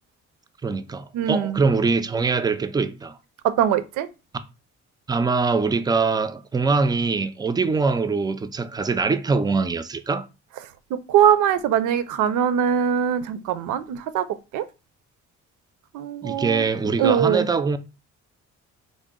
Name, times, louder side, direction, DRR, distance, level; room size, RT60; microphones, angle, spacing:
voice 1, 0.6-3.2 5.1-10.3 16.2-17.8, right 4 dB, 15° right, 0.3 m, -23 dB
voice 2, 1.1-1.6 3.4-4.1 10.9-14.3 14.5-14.7 15.9-16.6 17.0-17.5, right 9 dB, 85° right, 0.5 m, -21 dB
3.8 x 2.0 x 3.6 m
cardioid pair, 90°, 30 cm